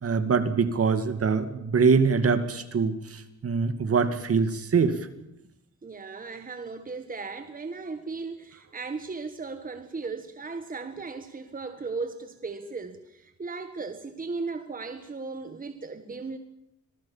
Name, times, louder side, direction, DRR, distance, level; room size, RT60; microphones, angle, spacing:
voice 1, 0.0-5.0, right 5 dB, 50° right, 10 dB, 2.2 m, -24 dB
voice 2, 5.8-16.4, right 4 dB, 30° right, 8 dB, 1.5 m, -36 dB
26.0 x 19.0 x 7.3 m, 0.83 s
wide cardioid pair, 130°, 29 cm